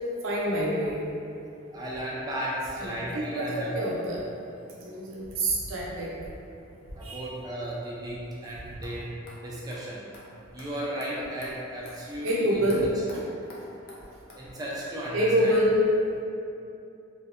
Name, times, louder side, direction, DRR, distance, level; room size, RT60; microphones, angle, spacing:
voice 1, 0.2-1.0 2.8-3.5 3.7-4.2 4.8-6.1 7.0-7.3 12.2-12.8 13.1-13.2 15.1-15.8, right 1 dB, 75° right, -4 dB, 0.5 m, -26 dB
voice 2, 1.7-3.7 6.9-9.1 9.4-10.1 10.5-12.9 14.3-15.6, right 1 dB, 20° right, -5 dB, 0.3 m, -35 dB
sound 1, 8.8-8.9 9.3-9.4 9.7-9.8 10.1-10.2 10.6-10.7 11.0-11.1 11.4-11.5 11.9-12.0 12.3-12.4 12.7-12.8 13.1-13.2 13.5-13.6 13.9-14.0 14.3-14.4, left 2 dB, 50° left, 0.4 m, -47 dB
2.6 x 2.1 x 2.3 m, 2.7 s
head